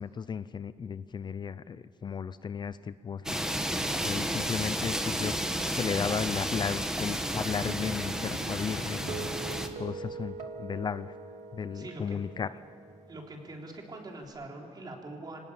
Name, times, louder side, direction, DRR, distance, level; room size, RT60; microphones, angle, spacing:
voice 1, 0.0-3.4 4.0-5.3 5.7-9.3 9.8-11.1 11.5-12.5, left 6 dB, 40° left, 14 dB, 0.5 m, -35 dB
sound 1, 3.3-9.7, equal, 5° right, 1.4 m, -32 dB
Guitar, 7.7-14.2, right 5 dB, 90° right, 2.5 m, -44 dB
voice 2, 11.7-12.2 13.1-15.4, right 2 dB, 35° right, 0 dB, 3.7 m, -43 dB
25.5 x 18.5 x 8.7 m, 2.3 s
wide cardioid pair, 160°, 11 cm